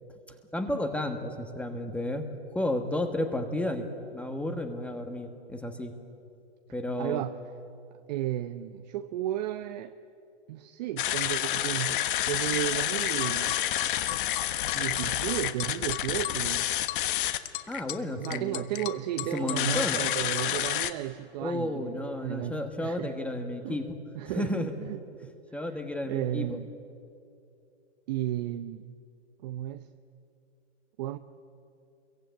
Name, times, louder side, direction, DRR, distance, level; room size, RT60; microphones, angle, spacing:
voice 1, 0.5-2.3 2.5-5.9 6.7-7.2 17.7-18.6 19.3-20.0 21.4-23.9 24.3-24.7 25.5-26.6, left 1 dB, 5° left, 6 dB, 1.3 m, -32 dB
voice 2, 7.0-7.3 7.9-10.0 10.5-13.6 14.7-16.7 18.2-23.2 23.6-23.8 24.2-25.3 26.1-26.7 28.1-28.9 29.4-29.9 31.0-31.2, right 13 dB, 35° right, 10 dB, 0.8 m, -34 dB
sound 1, 11.0-20.9, left 13 dB, 45° left, 1.4 m, -29 dB
27.5 x 23.0 x 9.2 m, 2.6 s
hypercardioid pair, 145°, 35 cm